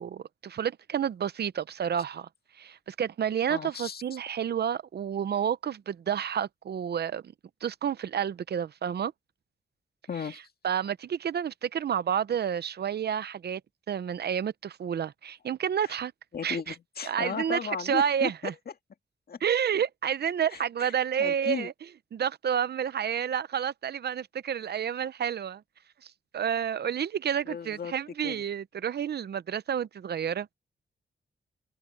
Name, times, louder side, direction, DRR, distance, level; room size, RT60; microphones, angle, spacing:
voice 1, 0.0-2.3 2.5-7.3 7.6-9.1 10.6-13.6 13.9-16.1 16.4-16.7 17.1-18.5 19.4-21.7 22.1-25.6 26.0-30.5, right 8 dB, 70° right, 0.7 m, -30 dB
voice 2, 3.5-4.0 10.1-10.4 15.8-16.0 16.3-18.3 19.3-19.4 20.5-20.9 21.2-21.7 27.5-27.9 28.2-28.4, left 6 dB, 65° left, 2.0 m, -35 dB
cardioid pair, 75°, 18 cm